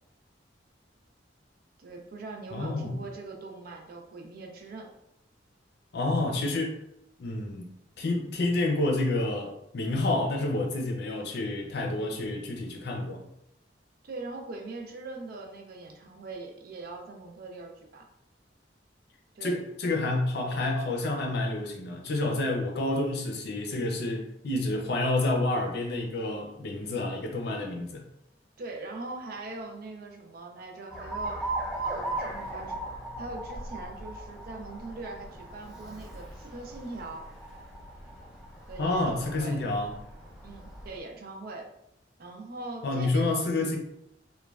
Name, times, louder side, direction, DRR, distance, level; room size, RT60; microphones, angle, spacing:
voice 1, 1.8-4.9 14.0-18.1 19.3-19.6 28.6-31.5 31.8-32.8 33.2-37.2 38.7-39.6 40.4-41.7 42.2-43.3, right 3 dB, 55° right, 0.4 m, -41 dB
voice 2, 2.5-3.0 5.9-6.8 7.2-13.2 19.4-28.0 38.8-40.0 42.8-43.8, left 2 dB, 65° left, 0.5 m, -29 dB
Alarm, 30.9-41.0, right 2 dB, ahead, 0.8 m, -38 dB
3.0 x 2.2 x 2.3 m
head